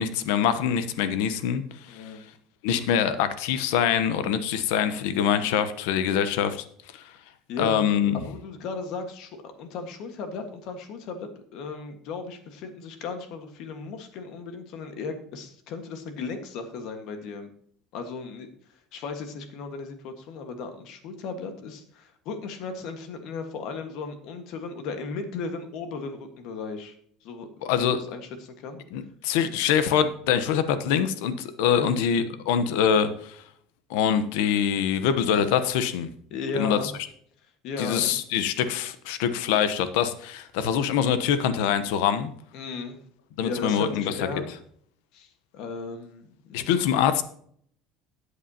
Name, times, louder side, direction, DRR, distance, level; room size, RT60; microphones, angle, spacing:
voice 1, 0.0-2.1 2.6-6.6 6.9-7.0 7.6-8.2 27.6-28.0 28.9-33.4 33.9-36.1 36.5-36.8 37.8-42.3 43.4-44.4 46.5-47.2, left 8 dB, 85° left, 12 dB, 0.9 m, -24 dB
voice 2, 1.9-2.2 7.5-7.9 8.1-17.5 17.9-18.5 18.9-26.9 27.2-28.8 31.7-31.9 36.3-36.9 37.6-38.2 42.5-43.0 43.4-44.5 45.1-45.3 45.5-46.8, left 4 dB, 55° left, 7 dB, 1.5 m, -36 dB
13.0 x 8.3 x 2.9 m, 0.63 s
cardioid pair, 165°, 0 cm